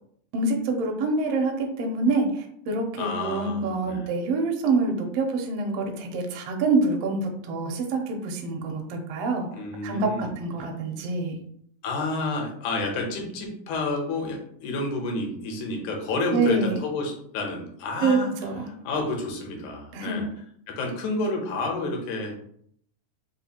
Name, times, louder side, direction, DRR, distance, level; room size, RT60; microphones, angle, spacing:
voice 1, 0.3-9.5 9.8-11.4 16.3-16.8 18.0-18.7 19.9-20.2, right 3 dB, 75° right, 2 dB, 1.5 m, -26 dB
voice 2, 2.9-4.0 9.5-10.3 11.8-18.3 18.8-20.3 20.7-22.3, left 2 dB, 80° left, 1 dB, 2.2 m, -30 dB
4.9 x 2.3 x 2.8 m, 0.67 s
omnidirectional pair, 3.4 m